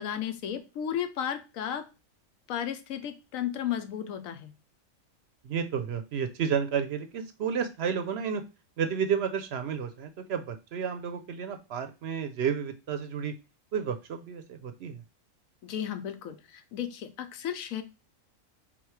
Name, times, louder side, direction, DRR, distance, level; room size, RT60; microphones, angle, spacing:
voice 1, 0.0-1.8 2.5-4.5 15.6-17.8, left 9 dB, 85° left, 9 dB, 1.1 m, -34 dB
voice 2, 5.4-8.4 8.8-13.3 13.7-15.0, right 7 dB, 65° right, 9 dB, 0.7 m, -31 dB
3.7 x 3.1 x 4.7 m, 0.29 s
omnidirectional pair, 1.4 m